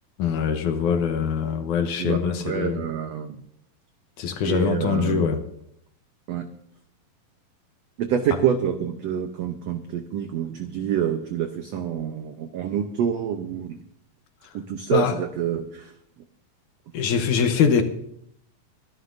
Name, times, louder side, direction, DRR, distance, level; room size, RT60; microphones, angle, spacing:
voice 1, 0.2-2.8 4.2-5.4 14.9-15.1 16.9-17.8, left 7 dB, 70° left, 7 dB, 2.2 m, -23 dB
voice 2, 1.9-3.4 4.4-5.3 6.3-6.5 8.0-13.8 14.5-15.9, right 9 dB, 80° right, 6 dB, 1.4 m, -27 dB
23.5 x 11.5 x 2.6 m, 0.70 s
omnidirectional pair, 4.0 m